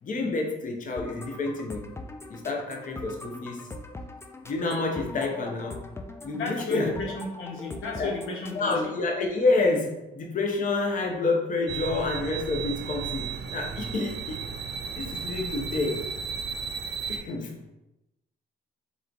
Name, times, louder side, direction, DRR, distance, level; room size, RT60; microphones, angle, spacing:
voice 1, 0.0-1.9 2.3-3.7 4.4-5.9 6.2-7.2 7.8-8.2 8.5-14.4 14.9-16.1 17.1-17.6, left 3 dB, 40° left, 1 dB, 0.7 m, -28 dB
sound 1, 1.0-9.0, left 2 dB, 15° left, 0.4 m, -42 dB
voice 2, 6.4-8.9, left 3 dB, 85° left, 0 dB, 0.8 m, -34 dB
sound 2, 11.7-17.2, right 6 dB, 60° right, 0.5 m, -34 dB
3.4 x 3.0 x 3.8 m, 0.94 s
cardioid pair, 90°, 20 cm